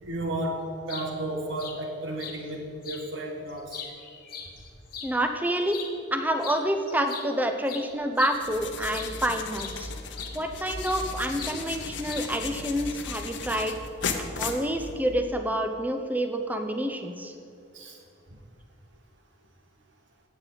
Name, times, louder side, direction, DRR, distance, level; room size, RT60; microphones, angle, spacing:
voice 1, 0.0-3.8 17.7-18.0, right 1 dB, 80° right, 1 dB, 1.6 m, -33 dB
sound 1, 0.7-1.1 1.6-1.8 2.2-2.4 2.8-3.0 3.5-5.1 5.6-5.9 6.4-6.6 6.9-9.2 9.6-9.8 10.2-11.1 11.4-11.6 12.1-12.5, left 7 dB, 50° left, 1.1 m, -40 dB
voice 2, 5.0-5.8 6.1-9.9 10.3-13.8 14.2-17.3, right 1 dB, 10° right, 6 dB, 0.7 m, -28 dB
sound 2, 8.3-15.3, left 5 dB, 70° left, 0.9 m, -36 dB
17.0 x 7.5 x 4.0 m, 2.4 s
head